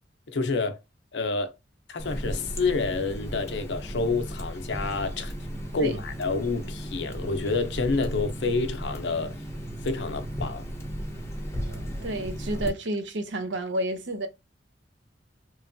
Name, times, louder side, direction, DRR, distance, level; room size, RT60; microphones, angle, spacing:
voice 1, 0.3-0.8 1.1-1.5 1.9-5.3 5.7-9.4 9.8-10.6, left 3 dB, 65° left, 0.6 m, -28 dB
Water tap faucet, 2.0-12.7, equal, 15° left, 0.6 m, -35 dB
voice 2, 11.7-14.3, right 1 dB, 75° right, 0.6 m, -31 dB
3.0 x 2.2 x 2.5 m
head